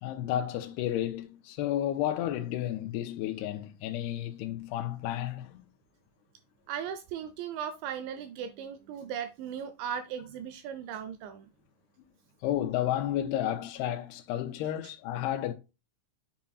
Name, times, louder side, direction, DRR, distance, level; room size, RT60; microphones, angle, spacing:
voice 1, 0.0-5.6 12.4-15.5, left 12 dB, 90° left, 2.3 m, -32 dB
voice 2, 6.7-11.5, right 8 dB, 80° right, 2.9 m, -37 dB
7.4 x 7.0 x 2.3 m
omnidirectional pair, 5.5 m